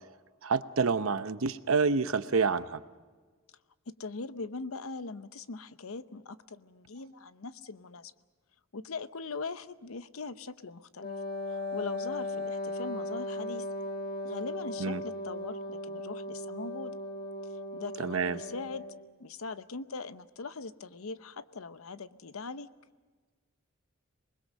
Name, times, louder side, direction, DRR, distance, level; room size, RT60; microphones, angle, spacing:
voice 1, 0.4-2.8 14.8-15.0 18.0-18.4, right 4 dB, 70° right, 12 dB, 0.9 m, -28 dB
voice 2, 3.9-8.1 8.7-11.1 11.5-13.7 14.2-16.9 17.7-18.9 19.2-22.7, left 4 dB, 85° left, 13 dB, 0.8 m, -41 dB
Wind instrument woodwind instrument, 11.0-19.1, left 1 dB, 45° left, 1.3 m, -37 dB
27.0 x 20.5 x 6.5 m, 1.4 s
head